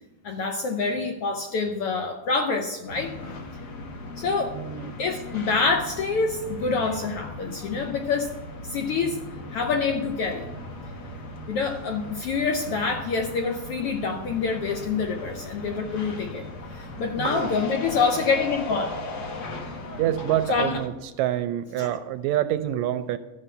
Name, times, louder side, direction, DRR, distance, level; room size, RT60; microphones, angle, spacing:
voice 1, 0.2-3.3 4.2-4.6 5.0-8.3 8.6-9.2 9.5-10.9 11.5-16.5 16.8-18.9 20.5-20.8 21.8-22.0, left 4 dB, 70° left, 4 dB, 1.4 m, -26 dB
sound 1, 2.9-20.9, left 2 dB, 55° left, 1.1 m, -38 dB
voice 2, 4.5-5.0 17.2-17.5 20.0-20.9 21.2-23.2, right 12 dB, 80° right, 11 dB, 1.8 m, -26 dB
12.0 x 5.6 x 7.9 m, 1.1 s
omnidirectional pair, 3.4 m